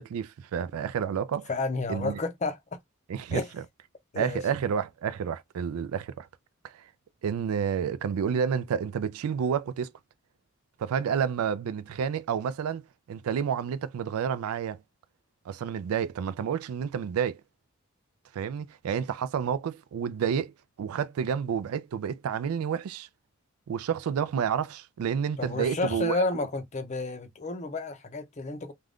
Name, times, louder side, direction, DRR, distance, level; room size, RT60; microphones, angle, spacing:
voice 1, 0.0-1.5 1.9-2.2 3.1-3.4 4.1-6.3 6.7-6.8 7.2-9.9 10.8-14.8 15.5-17.4 18.3-20.5 20.8-23.1 23.7-26.2, right 7 dB, 85° right, 0.3 m, -30 dB
voice 2, 1.5-2.6 3.3-3.5 4.1-4.4 25.4-28.7, left 3 dB, 30° left, 0.5 m, -31 dB
2.4 x 2.2 x 3.4 m
head